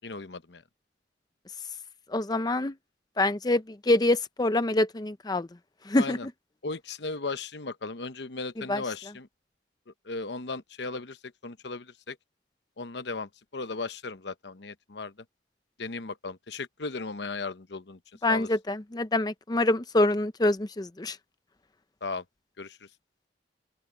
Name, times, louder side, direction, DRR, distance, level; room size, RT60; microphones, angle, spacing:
voice 1, 0.0-0.6 5.9-6.3 6.6-9.3 10.0-12.2 12.8-15.1 15.8-18.0 18.3-18.5 22.0-22.2 22.6-22.8, left 3 dB, 70° left, 1.0 m, -36 dB
voice 2, 2.1-2.7 3.2-5.5 5.9-6.2 8.7-8.8 18.2-21.2, left 2 dB, 20° left, 0.6 m, -25 dB
open air
head